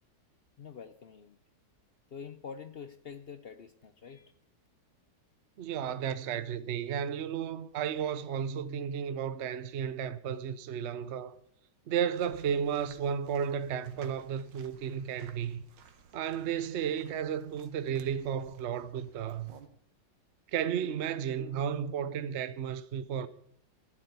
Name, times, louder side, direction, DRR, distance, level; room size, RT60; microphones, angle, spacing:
voice 1, 0.6-1.4 2.1-4.3, left 6 dB, 60° left, 0.6 m, -46 dB
voice 2, 5.6-11.4 11.9-15.6 16.1-19.5 20.5-23.3, right 8 dB, 60° right, 0.7 m, -33 dB
sound 1, 12.1-19.7, right 6 dB, 90° right, 1.9 m, -57 dB
12.5 x 7.5 x 8.2 m
omnidirectional pair, 1.9 m